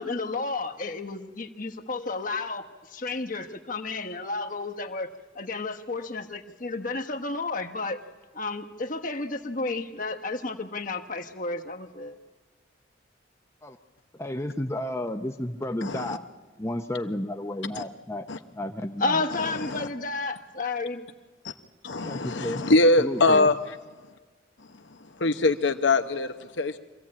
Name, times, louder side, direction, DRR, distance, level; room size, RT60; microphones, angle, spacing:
voice 1, 0.0-5.1 5.3-8.0 8.3-12.2 19.0-21.1, left 3 dB, 45° left, 1.2 m, -32 dB
voice 2, 14.2-16.2 16.6-18.3 18.5-19.2 22.0-22.6 23.0-23.5, left 1 dB, 15° left, 0.6 m, -32 dB
voice 3, 15.8-16.2 17.7-17.8 18.3-18.4 19.4-19.9 21.4-21.5 21.8-23.6 25.2-26.8, left 2 dB, 75° left, 0.9 m, -23 dB
24.5 x 15.0 x 8.7 m
head